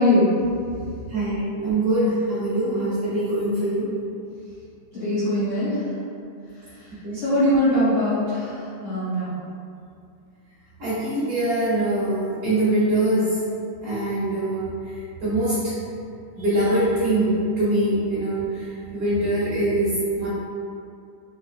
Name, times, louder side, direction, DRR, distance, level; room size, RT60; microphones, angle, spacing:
voice 1, 0.0-1.0 4.9-6.0 6.5-9.4, left 1 dB, 65° left, -14 dB, 1.2 m, -22 dB
voice 2, 1.1-3.9 6.9-7.2 10.8-13.4 13.8-15.8 16.4-20.3, right 1 dB, 55° right, -12 dB, 1.7 m, -23 dB
6.2 x 2.1 x 2.4 m, 2.5 s
omnidirectional pair, 3.9 m